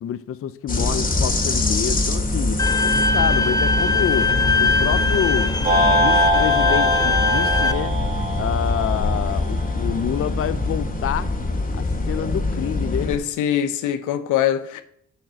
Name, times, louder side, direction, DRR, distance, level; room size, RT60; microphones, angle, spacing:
voice 1, 0.0-4.3 4.6-5.5 5.9-8.0 8.4-11.3 11.7-13.1, left 10 dB, 50° left, 0.6 m, -27 dB
sound 1, 0.7-13.2, left 2 dB, 30° left, 2.2 m, -24 dB
Bowed string instrument, 2.6-7.7, left 4 dB, 15° left, 0.7 m, -21 dB
sound 2, 5.6-10.0, right 1 dB, 25° right, 2.2 m, -23 dB
voice 2, 13.0-14.8, left 10 dB, 90° left, 0.9 m, -23 dB
7.5 x 5.5 x 7.5 m
cardioid pair, 90°, 30 cm